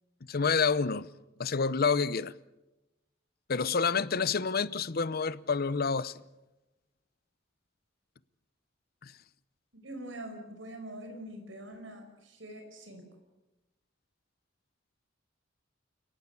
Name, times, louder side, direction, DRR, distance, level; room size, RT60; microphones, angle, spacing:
voice 1, 0.3-1.1 1.4-2.3 3.5-6.2 9.0-9.1, left 5 dB, 55° left, 0.7 m, -28 dB
voice 2, 9.7-13.1, right 1 dB, 85° right, 5.2 m, -44 dB
29.5 x 18.0 x 7.1 m
head